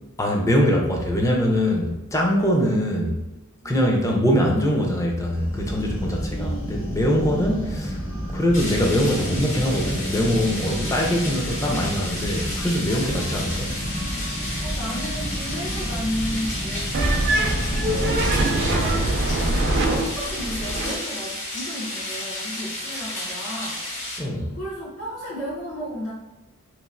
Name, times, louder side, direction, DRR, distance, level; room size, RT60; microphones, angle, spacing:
voice 1, 0.2-3.2 3.6-8.0 8.3-13.8 24.2-24.6, equal, 15° left, 0 dB, 0.4 m, -23 dB
sound 1, 5.3-18.0, equal, 65° left, 1.4 m, -31 dB
voice 2, 6.1-6.9 7.2-7.5 11.2-11.5 12.9-13.4 14.6-19.2 19.7-23.8 24.5-26.1, equal, 85° left, -6 dB, 1.2 m, -34 dB
sound 2, 8.5-24.2, left 1 dB, 35° left, 0.8 m, -32 dB
sound 3, 16.9-20.9, right 1 dB, 50° right, 0.4 m, -23 dB
3.1 x 2.4 x 2.5 m, 0.98 s
head